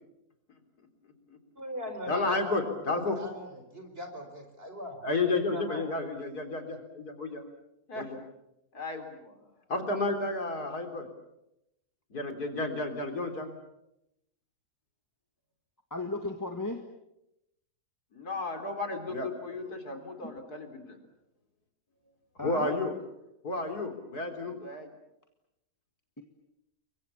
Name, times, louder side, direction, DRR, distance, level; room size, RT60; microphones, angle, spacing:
voice 1, 1.6-2.6 2.9-5.0 5.4-5.8, equal, 35° right, 6 dB, 4.9 m, -39 dB
voice 2, 2.1-3.2 5.0-7.4 7.9-8.2 8.7-9.4 9.7-11.1 12.1-13.5 18.1-21.0 22.4-22.9 23.4-24.9, left 2 dB, 75° left, 6 dB, 4.1 m, -32 dB
voice 3, 15.9-16.8 20.2-20.4 22.4-22.8, left 2 dB, 10° left, 4 dB, 1.6 m, -35 dB
30.0 x 23.5 x 7.1 m, 0.86 s
omnidirectional pair, 1.7 m